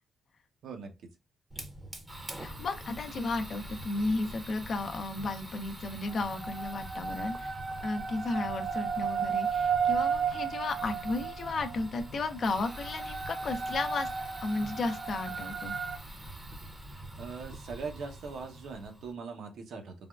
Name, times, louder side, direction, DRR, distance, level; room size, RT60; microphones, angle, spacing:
Fire, 1.5-19.1, right 1 dB, 20° right, 0.7 m, -45 dB
voice 1, 2.4-7.5 7.8-14.1 14.4-15.7, left 3 dB, 50° left, 0.5 m, -34 dB
sound 1, 6.1-11.8 12.7-16.0, right 6 dB, 50° right, 0.3 m, -33 dB
voice 2, 17.2-20.1, right 5 dB, 75° right, 0.7 m, -41 dB
3.4 x 2.2 x 2.3 m
cardioid pair, 95°, 0 cm